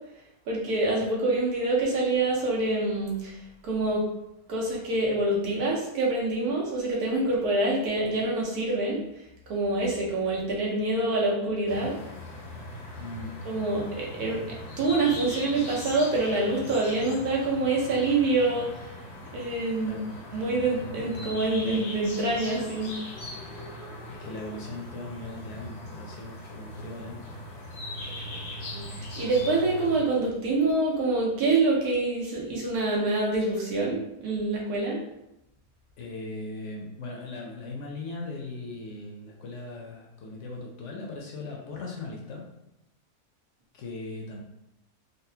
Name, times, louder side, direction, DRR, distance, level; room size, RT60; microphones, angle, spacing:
voice 1, 0.5-4.0 4.5-9.0 9.5-11.9 13.4-18.9 19.3-20.0 20.3-22.9 28.7-35.0, right 2 dB, 85° right, -3 dB, 1.4 m, -26 dB
sound 1, 11.7-30.0, left 1 dB, 85° left, 1.2 m, -40 dB
voice 2, 13.0-13.3 19.8-20.1 24.0-27.4 36.0-42.5 43.7-44.4, left 2 dB, 65° left, -1 dB, 0.8 m, -39 dB
4.0 x 2.0 x 2.7 m, 0.86 s
omnidirectional pair, 1.6 m